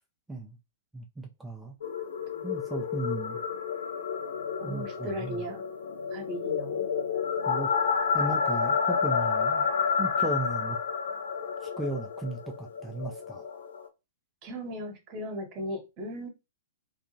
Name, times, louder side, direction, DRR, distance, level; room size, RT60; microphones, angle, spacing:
voice 1, 0.9-1.7 2.4-3.4 4.6-5.4 7.5-7.7 8.1-9.7 10.0-10.8 11.8-13.4, right 2 dB, 10° right, 0.4 m, -35 dB
sound 1, 1.8-13.9, left 6 dB, 65° left, 0.5 m, -30 dB
voice 2, 4.6-5.6 6.1-6.9 14.4-16.3, equal, 35° right, 1.0 m, -37 dB
2.7 x 2.3 x 2.6 m
figure-of-eight pair, 110°, 0 cm